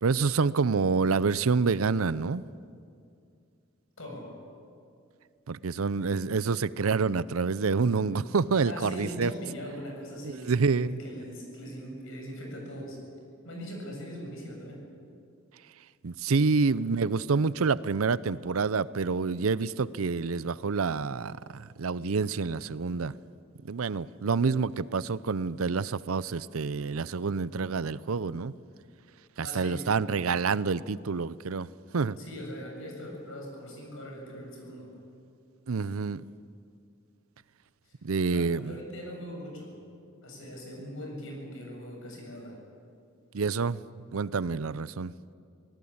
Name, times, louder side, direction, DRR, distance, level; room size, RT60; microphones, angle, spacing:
voice 1, 0.0-2.5 5.5-9.3 10.2-11.0 16.0-23.2 23.6-28.5 29.4-31.7 31.9-32.2 35.7-36.2 38.0-38.8 43.3-43.8 44.1-45.1, right 4 dB, 85° right, 18 dB, 0.6 m, -27 dB
voice 2, 4.0-4.3 8.6-13.0 13.4-14.9 29.4-29.8 32.2-34.9 37.9-38.0 38.3-39.7 40.2-42.6, equal, 70° left, 0 dB, 7.7 m, -41 dB
25.5 x 18.5 x 8.7 m, 2.4 s
head